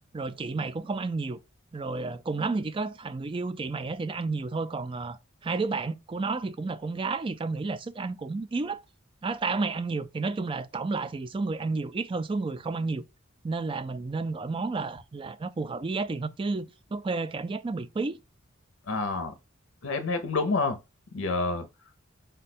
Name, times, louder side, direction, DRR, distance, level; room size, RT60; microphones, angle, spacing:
voice 1, 0.1-1.4 1.7-8.8 9.2-13.0 13.4-18.2, right 3 dB, 25° right, 0.3 m, -31 dB
voice 2, 18.9-19.3 19.8-20.8 21.1-21.7, left 3 dB, 80° left, 0.6 m, -28 dB
5.3 x 2.2 x 4.1 m
head